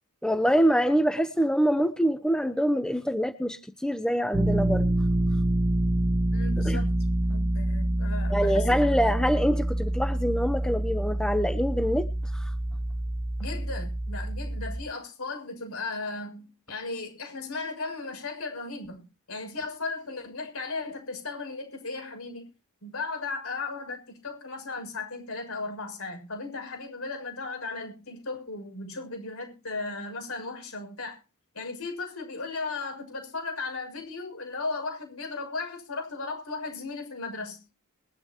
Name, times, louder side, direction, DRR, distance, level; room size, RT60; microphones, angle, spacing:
voice 1, 0.2-4.9 6.6-6.8 8.3-12.1 12.3-12.5, equal, 5° left, 0.9 m, -25 dB
sound 1, 4.3-14.8, right 1 dB, 25° right, 1.5 m, -27 dB
voice 2, 6.3-6.9 7.3-9.1 13.4-22.5 22.8-31.2 31.5-37.6, left 3 dB, 70° left, 6.6 m, -36 dB
22.0 x 11.5 x 3.0 m
head